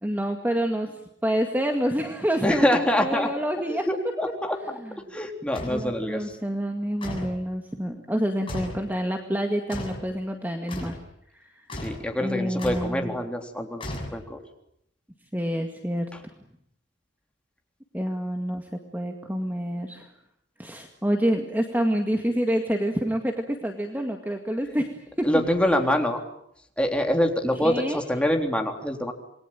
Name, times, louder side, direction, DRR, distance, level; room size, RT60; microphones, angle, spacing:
voice 1, 0.0-3.9 4.8-5.0 5.7-11.0 11.3-11.6 12.2-13.2 15.3-16.1 17.9-20.1 20.6-25.4 27.6-28.1, equal, 10° right, 4 dB, 2.0 m, -28 dB
voice 2, 2.4-3.3 3.7-4.8 5.1-6.4 11.8-14.4 16.1-16.2 25.2-26.2 26.8-29.1, left 1 dB, 5° left, 3 dB, 3.6 m, -25 dB
sound 1, 5.5-5.9 7.0-7.4 8.5-8.9 9.7-10.1 10.7-11.0 11.7-12.1 12.6-13.0 13.8-14.4, left 1 dB, 30° left, 7.1 m, -35 dB
28.0 x 22.0 x 9.0 m, 0.73 s
head